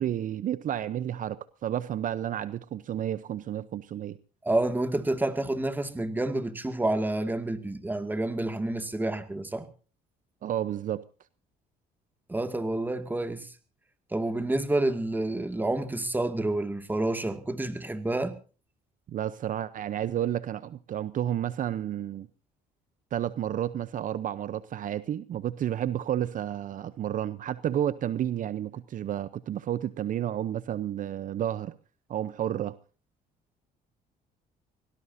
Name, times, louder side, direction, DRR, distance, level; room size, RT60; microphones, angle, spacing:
voice 1, 0.0-4.2 10.4-11.0 19.1-22.3 23.1-31.7 32.1-32.8, right 11 dB, 50° right, 0.8 m, -31 dB
voice 2, 4.4-9.7 12.3-13.5 14.1-18.3, right 2 dB, 10° right, 2.2 m, -29 dB
25.0 x 18.0 x 2.8 m
cardioid pair, 110°, 17 cm